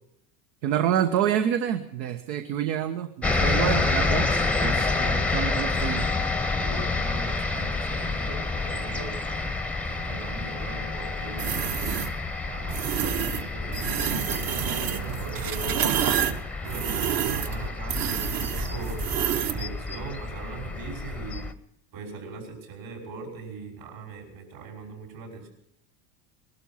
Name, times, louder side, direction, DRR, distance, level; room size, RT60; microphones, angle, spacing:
voice 1, 0.6-6.1, right 10 dB, 80° right, 7 dB, 1.2 m, -27 dB
sound 1, 3.2-21.5, left 3 dB, 5° left, 0.7 m, -29 dB
voice 2, 6.5-9.6 9.8-11.8 12.4-16.1 16.6-19.0 19.5-21.5 21.9-25.5, right 4 dB, 60° right, 1 dB, 5.6 m, -40 dB
sound 2, 11.4-12.1 12.7-13.4 13.7-19.6, right 9 dB, 45° right, 1.1 m, -28 dB
20.0 x 12.5 x 5.6 m, 0.73 s
supercardioid pair, 115°, 50 cm